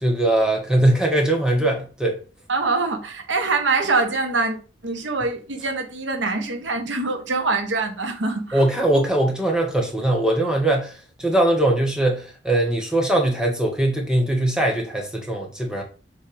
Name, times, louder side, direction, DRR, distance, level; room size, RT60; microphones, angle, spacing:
voice 1, 0.0-2.2 8.5-15.8, right 1 dB, 5° right, 1.5 m, -21 dB
voice 2, 2.5-4.6 4.8-8.6, right 3 dB, 85° right, 1.2 m, -24 dB
7.3 x 4.4 x 3.4 m
head